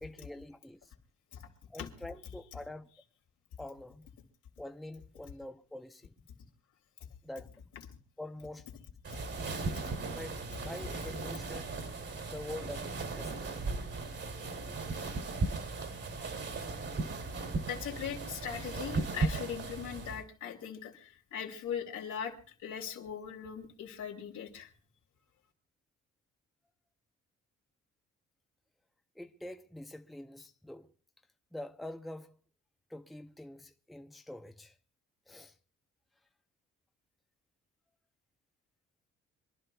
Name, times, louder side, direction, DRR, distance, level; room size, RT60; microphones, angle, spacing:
voice 1, 0.0-0.9 1.7-2.9 3.6-4.1 4.6-6.1 7.2-7.5 8.2-8.7 10.0-11.7 12.3-13.6 29.2-30.9 31.5-32.4 32.9-34.7 35.3-35.5, left 1 dB, ahead, 0.7 m, -45 dB
sound 1, 9.0-20.2, right 3 dB, 50° right, 2.6 m, -37 dB
voice 2, 9.7-10.1 17.7-22.4 22.6-24.7, left 8 dB, 80° left, 2.8 m, -40 dB
26.5 x 11.5 x 2.3 m
cardioid pair, 90°, 30 cm